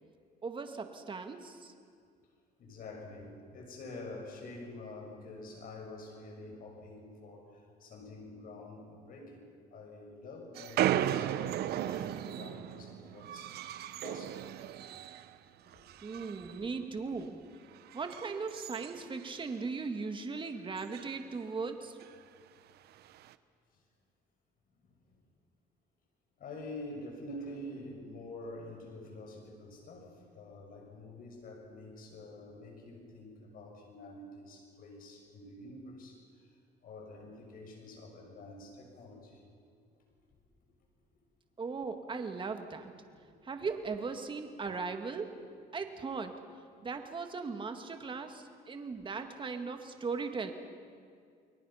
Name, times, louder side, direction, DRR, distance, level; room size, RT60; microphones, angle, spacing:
voice 1, 0.4-1.7 16.0-17.4 17.9-22.0 41.6-42.9 43.4-45.3 45.7-46.3 46.8-50.5, right 4 dB, 30° right, 6 dB, 2.0 m, -38 dB
voice 2, 2.6-7.4 7.8-13.5 14.0-14.5 16.5-16.6 26.4-36.1 36.8-39.4 49.9-50.0, left 2 dB, 55° left, 2 dB, 6.6 m, -47 dB
sound 1, 10.6-15.4 15.7-16.6 17.0-17.2 17.8-19.7 20.0-20.1 20.4-20.5 20.8-21.2 22.0-22.1 23.0-23.3, right 11 dB, 70° right, 0.9 m, -36 dB
29.5 x 22.0 x 5.8 m, 2.2 s
cardioid pair, 110°, 17 cm